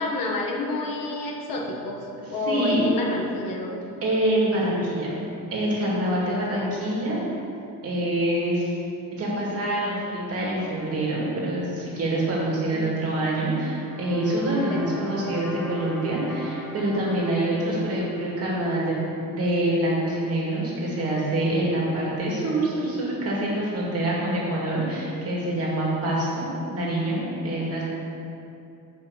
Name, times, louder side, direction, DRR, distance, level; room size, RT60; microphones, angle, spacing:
voice 1, 0.0-2.0 2.3-3.8 12.7-13.0 14.7-14.8 15.2-15.3, left 2 dB, 65° left, -1 dB, 1.4 m, -29 dB
voice 2, 2.2-2.8 4.0-5.1 5.5-7.2 7.8-8.7 9.2-18.9 19.3-27.8, right 1 dB, 40° right, -5 dB, 2.2 m, -26 dB
sound 1, 13.7-19.9, equal, 5° left, 0.6 m, -40 dB
7.3 x 5.2 x 7.1 m, 2.7 s
cardioid pair, 175°, 37 cm